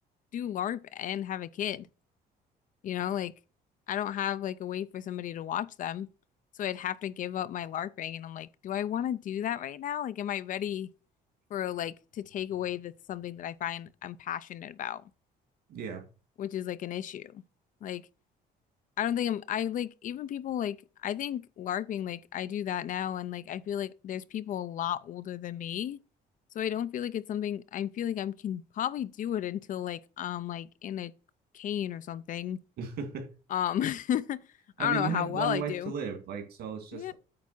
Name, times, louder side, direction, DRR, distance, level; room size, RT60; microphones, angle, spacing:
voice 1, 0.3-1.9 2.8-3.3 3.9-6.1 6.6-10.9 11.5-15.0 16.4-17.4 17.8-18.0 19.0-26.0 26.5-31.1 31.5-32.6 33.5-34.4 34.8-35.9 36.9-37.1, left 10 dB, 50° left, 0.5 m, -33 dB
voice 2, 15.7-16.0 32.8-33.3 34.8-37.1, right 6 dB, 70° right, 2.6 m, -35 dB
8.6 x 3.5 x 6.0 m
cardioid pair, 110°, 17 cm